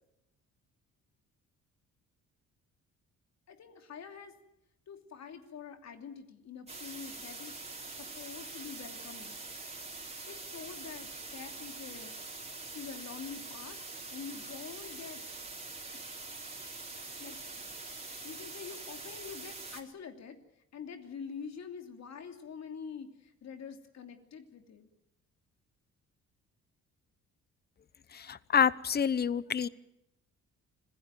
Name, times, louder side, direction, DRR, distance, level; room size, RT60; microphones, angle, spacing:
voice 1, 3.5-4.4 4.9-7.5 8.0-9.4 10.3-12.2 12.7-13.8 14.1-15.2 17.2-17.4 18.2-20.4 20.7-24.9, left 6 dB, 60° left, 6 dB, 3.0 m, -46 dB
sound 1, 6.7-19.8, right 3 dB, 20° right, 3.9 m, -44 dB
voice 2, 28.3-29.7, left 7 dB, 35° left, 19 dB, 0.8 m, -27 dB
25.5 x 16.0 x 9.2 m, 0.84 s
cardioid pair, 90°, 30 cm